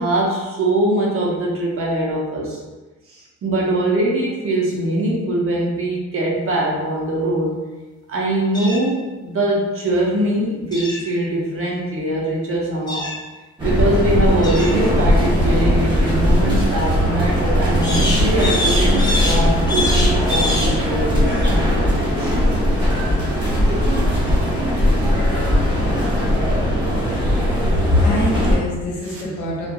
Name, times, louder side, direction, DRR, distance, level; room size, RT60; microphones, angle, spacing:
voice 1, 0.0-2.6 3.1-7.5 8.1-13.1 13.6-22.3 29.0-29.2, right 1 dB, 45° right, -3 dB, 0.7 m, -22 dB
sound 1, 8.5-8.8 10.7-11.0 12.9-13.2 14.4-14.8 17.8-20.8, left 1 dB, 15° left, 0.5 m, -24 dB
sound 2, 13.6-28.6, equal, 15° right, 1.1 m, -18 dB
voice 2, 27.6-29.7, left 1 dB, 80° left, -3 dB, 0.8 m, -22 dB
2.8 x 2.4 x 2.3 m, 1.2 s
cardioid pair, 90°, 30 cm